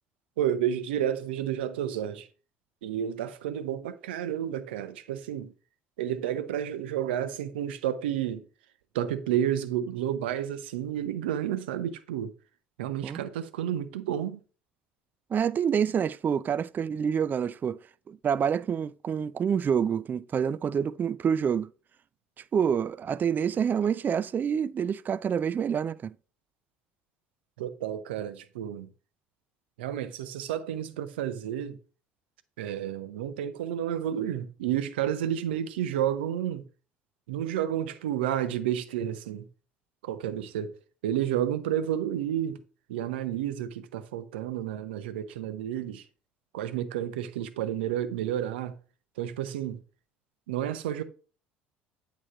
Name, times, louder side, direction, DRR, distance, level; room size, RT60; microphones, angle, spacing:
voice 1, 0.4-2.3 2.8-5.5 6.0-8.4 8.9-12.3 12.8-14.4 27.6-28.9 29.8-31.8 32.6-36.6 37.3-39.5 40.0-40.7 41.0-42.6 42.9-46.0 46.5-48.8 49.2-49.8 50.5-51.0, right 10 dB, 75° right, 0.7 m, -31 dB
voice 2, 15.3-17.8 18.1-21.7 22.4-26.1, right 7 dB, 30° right, 0.3 m, -27 dB
8.5 x 3.1 x 5.0 m
hypercardioid pair, 65°, 6 cm